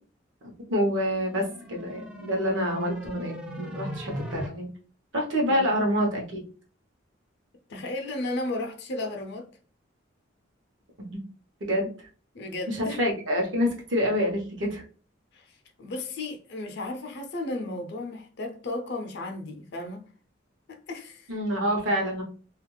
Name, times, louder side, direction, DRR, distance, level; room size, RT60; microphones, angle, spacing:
voice 1, 0.7-4.7 5.1-6.4 11.6-11.9 12.7-14.8 21.3-22.2, equal, 70° right, 0.8 m, -27 dB
sound 1, 1.2-4.5, right 1 dB, 5° right, 0.4 m, -38 dB
voice 2, 7.7-9.5 12.3-13.0 15.3-20.1 20.7-21.3, left 2 dB, 60° left, 0.5 m, -34 dB
2.4 x 2.2 x 3.1 m
head